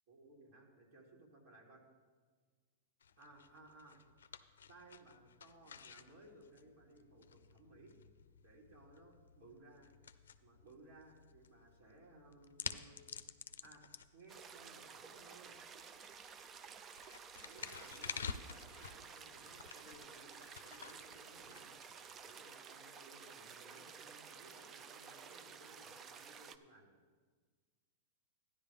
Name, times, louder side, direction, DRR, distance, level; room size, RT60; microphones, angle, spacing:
voice 1, 0.1-1.8 3.2-4.0 4.7-8.0 8.4-9.9 10.4-13.1 13.6-13.8 14.1-15.6 17.4-21.8 22.2-27.0, right 2 dB, 60° right, -2 dB, 2.8 m, -60 dB
sound 1, 3.0-22.2, left 6 dB, 90° left, 0.5 m, -51 dB
sound 2, 14.3-26.6, right 6 dB, 25° right, 0.5 m, -53 dB
13.0 x 10.5 x 3.5 m, 1.5 s
hypercardioid pair, 125°, 0 cm